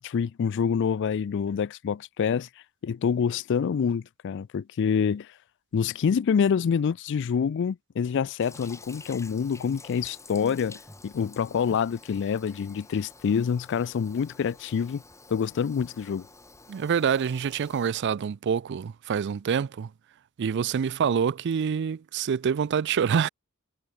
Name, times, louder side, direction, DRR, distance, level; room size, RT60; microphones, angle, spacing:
voice 1, 0.0-2.5 2.8-5.3 5.7-15.0 15.3-16.3, left 6 dB, 55° left, 0.3 m, -26 dB
Toilet flush, 8.4-17.9, left 3 dB, 15° left, 2.5 m, -50 dB
voice 2, 16.7-19.9 20.4-23.3, right 7 dB, 55° right, 0.4 m, -26 dB
head